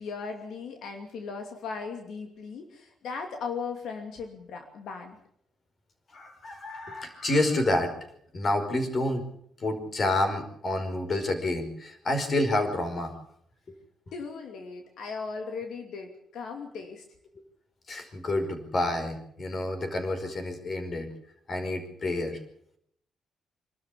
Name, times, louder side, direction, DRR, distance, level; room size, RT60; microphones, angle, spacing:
voice 1, 0.0-5.2 14.1-17.0, left 5 dB, 80° left, 4 dB, 2.7 m, -37 dB
voice 2, 6.1-7.9 8.3-9.2 9.6-13.1 17.9-21.1 21.5-22.4, left 1 dB, 40° left, 7 dB, 5.2 m, -28 dB
26.0 x 13.0 x 8.5 m, 0.68 s
cardioid pair, 120°, 0 cm